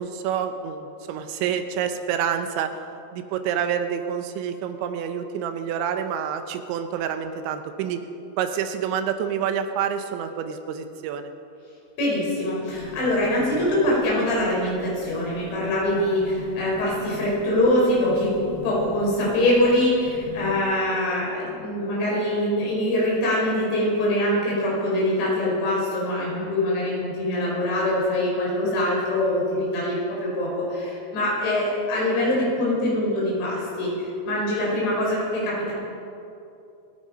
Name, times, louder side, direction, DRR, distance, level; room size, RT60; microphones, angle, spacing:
voice 1, 0.0-2.7 3.1-8.0 8.4-11.3, right 8 dB, 85° right, 8 dB, 3.1 m, -28 dB
voice 2, 12.0-18.3 18.6-35.7, left 1 dB, 75° left, -5 dB, 7.2 m, -23 dB
sound 1, 12.7-20.6, left 1 dB, 5° right, 3.4 m, -41 dB
27.5 x 9.4 x 5.2 m, 2.6 s
omnidirectional pair, 5.2 m